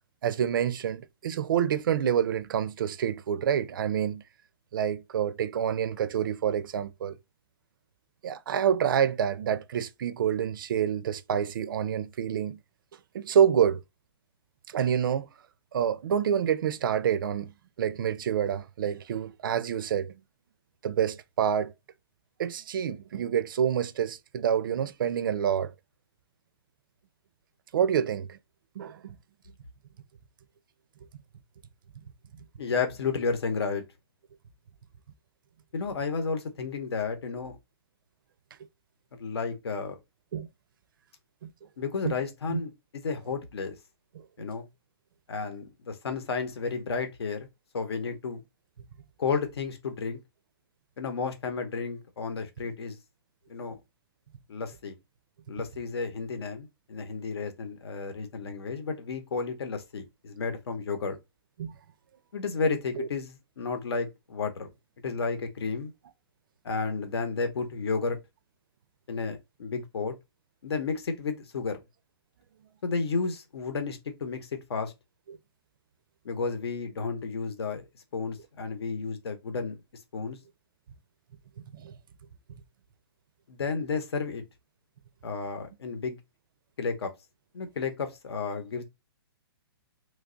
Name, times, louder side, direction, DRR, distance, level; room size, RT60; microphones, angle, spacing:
voice 1, 0.2-4.2 4.7-7.2 8.2-12.6 13.1-13.8 14.7-15.3 15.7-17.5 17.8-20.2 20.8-21.7 22.4-25.7 27.7-28.4 28.8-29.0 40.3-40.5 41.4-41.5 42.0-42.2 42.5-42.6 44.2-44.3 61.6-61.7 63.0-63.1 75.3-75.4 81.7-81.9, right 9 dB, 55° right, 0.4 m, -27 dB
voice 2, 32.6-33.8 35.7-37.6 39.2-40.0 41.8-43.8 44.4-44.7 45.3-47.5 47.7-48.4 49.2-50.2 51.0-53.0 53.5-53.8 54.5-54.9 55.5-61.2 62.3-64.7 65.0-65.9 66.6-68.2 69.1-70.1 70.6-71.8 72.8-74.9 76.2-77.9 78.1-79.8 80.1-80.4 83.5-84.4 85.2-86.2 86.8-87.1 87.5-88.8, left 4 dB, 80° left, 0.9 m, -32 dB
3.2 x 2.3 x 3.7 m
hypercardioid pair, 165°, 13 cm